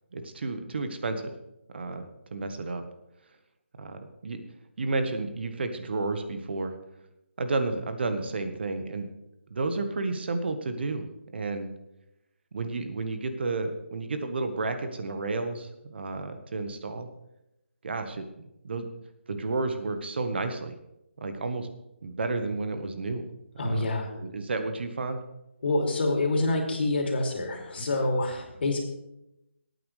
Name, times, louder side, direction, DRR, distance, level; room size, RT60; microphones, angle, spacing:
voice 1, 0.1-1.3 1.7-2.8 3.8-4.4 4.8-6.7 7.4-9.1 9.5-11.1 11.3-11.7 12.5-17.1 17.8-18.2 18.6-18.9 19.3-20.7 21.2-21.7 22.0-23.2 23.6-23.9 24.1-25.2, right 3 dB, 60° right, 8 dB, 1.4 m, -31 dB
voice 2, 23.6-24.1 25.6-28.8, left 2 dB, 55° left, 2 dB, 3.0 m, -27 dB
19.0 x 9.1 x 3.4 m, 0.88 s
figure-of-eight pair, 155°, 7 cm